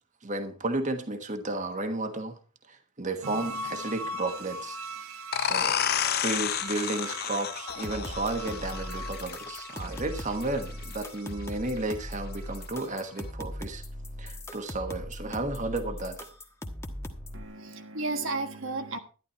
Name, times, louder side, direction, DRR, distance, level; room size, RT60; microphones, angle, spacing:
voice 1, 0.2-2.4 2.7-4.8 5.4-5.8 6.2-13.8 14.2-16.2, right 2 dB, 35° right, 1.3 m, -33 dB
sound 1, 3.2-12.6 13.0-13.1, right 1 dB, 90° right, 1.4 m, -41 dB
sound 2, 5.3-10.7, left 9 dB, 45° left, 0.5 m, -31 dB
sound 3, 7.7-17.4, left 1 dB, 15° left, 1.3 m, -39 dB
voice 2, 17.3-19.0, right 3 dB, 60° right, 1.4 m, -33 dB
12.0 x 11.0 x 4.2 m
head